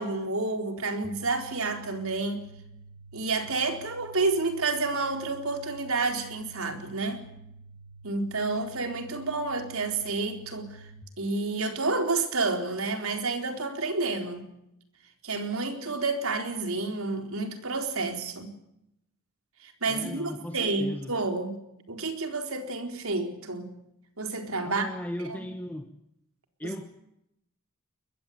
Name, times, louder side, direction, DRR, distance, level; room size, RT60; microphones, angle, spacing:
voice 1, 0.0-2.4 3.1-7.3 8.0-10.9 11.2-14.5 15.2-18.5 19.6-21.5 21.9-23.7 24.2-24.9 25.3-25.4 26.6-26.7, right 3 dB, 75° right, 5 dB, 4.2 m, -30 dB
sound 1, 1.0-11.0, right 3 dB, 45° right, 1.6 m, -49 dB
voice 2, 19.9-21.1 24.6-25.9 26.6-26.9, left 1 dB, 10° left, 5 dB, 1.4 m, -37 dB
22.5 x 21.5 x 8.8 m, 0.80 s
head